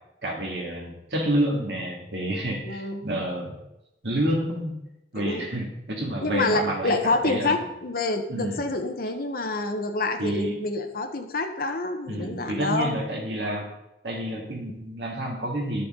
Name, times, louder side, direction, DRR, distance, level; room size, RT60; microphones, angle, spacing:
voice 1, 0.2-3.5 4.0-4.8 5.1-7.0 7.2-7.5 8.3-8.6 10.2-10.7 12.1-13.7 14.0-15.8, right 1 dB, 75° right, 0 dB, 2.3 m, -29 dB
voice 2, 2.6-3.0 5.2-5.5 6.2-13.0, left 2 dB, 55° left, 5 dB, 1.1 m, -27 dB
11.0 x 6.8 x 3.8 m, 0.91 s
head